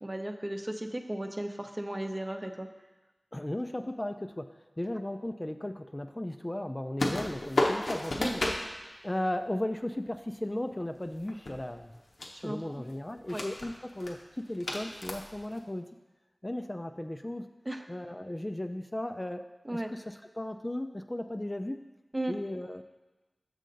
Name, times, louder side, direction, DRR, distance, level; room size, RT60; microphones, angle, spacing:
voice 1, 0.0-2.7 8.2-8.4 12.4-12.6 13.3-13.4 17.7-17.9 19.6-19.9 22.1-22.4, right 1 dB, 30° right, 5 dB, 0.6 m, -35 dB
voice 2, 3.3-4.5 4.8-8.4 9.0-11.9 12.4-15.9 16.4-17.5 17.9-21.8 22.3-22.8, left 1 dB, 25° left, 7 dB, 0.3 m, -36 dB
sound 1, 7.0-8.7 11.0-11.9 12.2-12.5 13.1-13.7 14.0-14.1 14.6-15.6, left 2 dB, 85° left, 0.7 m, -32 dB
6.5 x 6.3 x 3.9 m, 1.1 s
wide cardioid pair, 50°, 0 cm